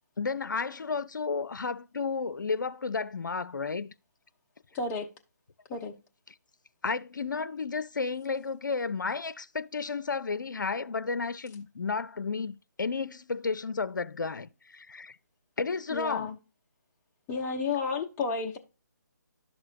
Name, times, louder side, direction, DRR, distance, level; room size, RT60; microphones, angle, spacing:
voice 1, 0.2-3.9 6.8-15.2 15.6-16.3, left 4 dB, 80° left, 0.5 m, -32 dB
voice 2, 4.7-5.1 5.7-5.9 15.9-16.4 17.3-18.6, left 4 dB, 15° left, 0.8 m, -31 dB
11.5 x 6.2 x 2.5 m
figure-of-eight pair, 150°, 10 cm